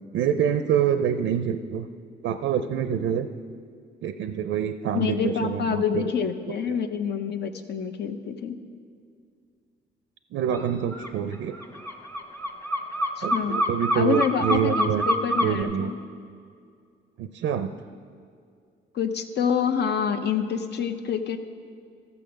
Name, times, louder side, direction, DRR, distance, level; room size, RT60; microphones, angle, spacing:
voice 1, 0.1-1.9 2.2-3.3 4.0-6.1 10.3-11.6 13.2-15.1 15.4-15.9 17.2-17.7, right 8 dB, 75° right, 9 dB, 0.5 m, -26 dB
voice 2, 4.9-8.6 13.2-13.6 13.9-16.0 18.9-21.4, left 7 dB, 55° left, 8 dB, 0.8 m, -27 dB
sound 1, 10.5-10.7 10.9-15.6, equal, 15° left, 0.9 m, -26 dB
14.0 x 7.0 x 5.2 m, 2.2 s
cardioid pair, 90°, 20 cm